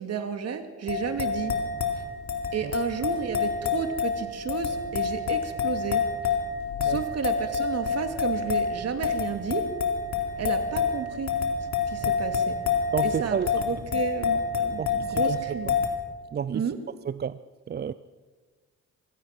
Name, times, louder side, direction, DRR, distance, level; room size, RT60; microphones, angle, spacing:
voice 1, 0.0-1.6 2.0-2.1 2.5-6.4 6.8-9.7 10.4-11.4 11.9-15.8 16.5-17.0, right 6 dB, 55° right, 2.5 m, -32 dB
sound 1, 0.9-15.9, left 5 dB, 65° left, 3.6 m, -28 dB
voice 2, 12.9-13.5 14.8-15.4 15.7-15.8 16.3-16.6 17.1-17.4 17.7-17.9, right 7 dB, 35° right, 0.5 m, -30 dB
24.5 x 17.5 x 6.1 m
cardioid pair, 90°, 30 cm